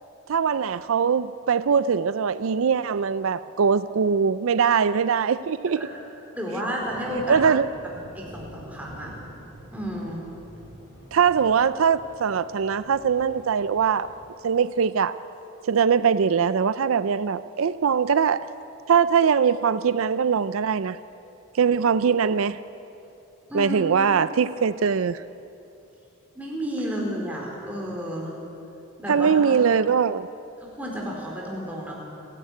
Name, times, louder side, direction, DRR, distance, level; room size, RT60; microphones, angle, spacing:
voice 1, 0.3-5.8 7.3-7.7 11.1-14.1 14.4-15.1 15.7-18.4 18.9-21.0 21.6-22.6 23.5-25.2 29.1-30.3, right 6 dB, 80° right, 15 dB, 0.5 m, -22 dB
voice 2, 6.3-7.4 8.1-9.1 9.7-10.2 23.5-23.8 26.3-28.4 29.0-29.6 30.6-31.9, equal, 5° right, -2 dB, 4.3 m, -32 dB
sound 1, 6.8-14.3, equal, 10° left, 6.5 m, -46 dB
29.0 x 11.0 x 9.2 m, 2.8 s
head